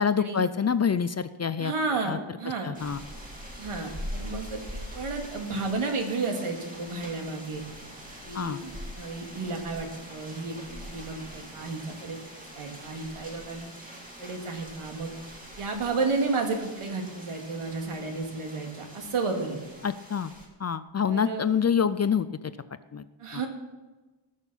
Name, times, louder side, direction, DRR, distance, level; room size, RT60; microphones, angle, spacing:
voice 1, 0.0-1.7 2.0-2.2 2.6-3.0 8.3-8.6 19.8-20.3 20.6-22.3 22.9-23.1 23.3-23.4, left 7 dB, 35° left, 14 dB, 0.4 m, -26 dB
voice 2, 1.6-2.7 3.6-7.6 8.2-10.6 10.9-13.7 14.2-15.1 15.6-19.6 21.1-21.5 23.2-23.5, right 3 dB, 90° right, 3 dB, 2.3 m, -32 dB
sound 1, 2.7-20.5, equal, 15° right, 2.6 m, -43 dB
19.0 x 6.4 x 5.7 m, 1.2 s
wide cardioid pair, 145°, 49 cm